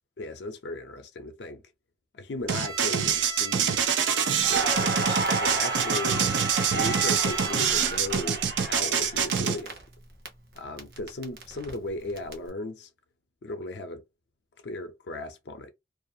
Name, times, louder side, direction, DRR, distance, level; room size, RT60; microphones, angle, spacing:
voice 1, 0.2-1.6 2.1-3.8 4.5-6.3 6.7-9.8 10.6-12.9 13.4-14.0 14.6-15.7, left 2 dB, 65° left, 0.5 m, -36 dB
Bowed string instrument, 2.5-8.0, right 2 dB, 20° right, 0.5 m, -36 dB
sound 1, 2.5-9.6, right 7 dB, 85° right, 0.5 m, -25 dB
Crackle, 4.4-10.3 10.6-12.3, right 3 dB, 60° right, 0.8 m, -32 dB
2.4 x 2.3 x 2.6 m
head